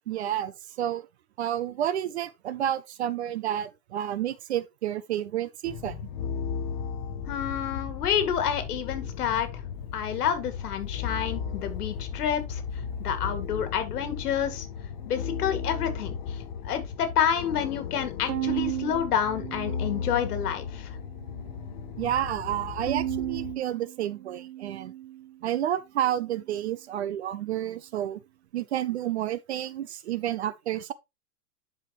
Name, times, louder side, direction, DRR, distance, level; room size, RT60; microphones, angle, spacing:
voice 1, 0.1-1.1 1.4-6.0 22.0-24.9 25.4-28.2 28.5-30.9, right 11 dB, 45° right, 0.6 m, -30 dB
sound 1, 5.6-23.5, left 7 dB, 25° left, 0.6 m, -35 dB
voice 2, 7.3-9.6 9.9-12.6 13.0-14.7 15.1-16.2 16.6-20.9, left 8 dB, 70° left, 2.3 m, -29 dB
Bowed string instrument, 18.3-20.7 21.1-21.9 22.9-25.4, right 13 dB, 70° right, 1.1 m, -35 dB
11.0 x 4.9 x 3.0 m
supercardioid pair, 165°, 47 cm